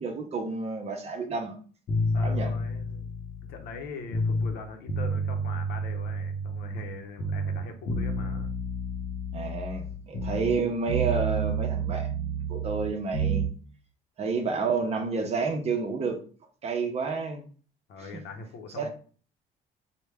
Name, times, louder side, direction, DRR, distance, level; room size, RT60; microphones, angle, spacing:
voice 1, 0.0-1.5 2.2-2.5 9.3-13.4 14.2-16.2 16.6-17.5 18.0-18.1 18.8-18.9, right 4 dB, 40° right, 0.7 m, -30 dB
sound 1, 1.9-4.6 4.9-6.9 7.2-10.6 10.9-13.5, right 2 dB, 40° left, 0.8 m, -30 dB
voice 2, 2.1-3.1 3.4-8.5 17.9-18.9, left 4 dB, 75° left, 0.7 m, -42 dB
3.3 x 2.1 x 3.4 m
cardioid pair, 110°, 17 cm